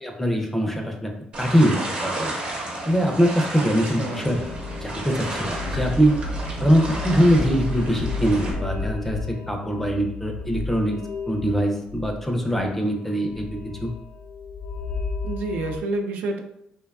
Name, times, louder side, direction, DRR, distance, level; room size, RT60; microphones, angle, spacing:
voice 1, 0.0-1.1 1.4-1.8 2.0-2.3 2.9-4.4 4.8-6.1 6.6-11.0 11.3-13.5 13.8-13.9, equal, 10° left, 2 dB, 0.4 m, -22 dB
sound 1, 1.3-8.5, right 2 dB, 40° right, 0.7 m, -32 dB
sound 2, 3.8-15.8, left 3 dB, 80° left, 0.5 m, -33 dB
voice 2, 4.0-4.3 15.2-16.4, right 2 dB, 80° right, 5 dB, 0.3 m, -28 dB
2.6 x 2.2 x 2.3 m, 0.78 s
cardioid pair, 105°, 3 cm